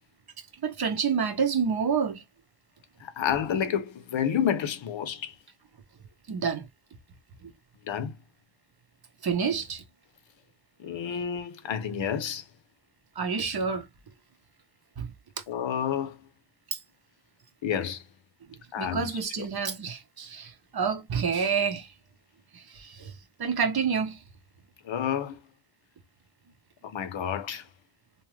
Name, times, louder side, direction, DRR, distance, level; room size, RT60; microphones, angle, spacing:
voice 1, 0.6-2.2 6.3-6.7 7.4-7.5 9.2-9.8 13.2-13.9 15.0-15.1 16.7-16.8 18.5-21.9 22.5-23.1 23.4-24.2, right 6 dB, 50° right, 0.7 m, -28 dB
voice 2, 3.0-5.3 7.8-8.2 10.8-12.4 15.5-16.2 17.6-18.0 18.7-19.5 24.8-25.4 26.8-27.7, left 8 dB, 65° left, 0.7 m, -30 dB
2.8 x 2.3 x 3.0 m
wide cardioid pair, 130°, 50 cm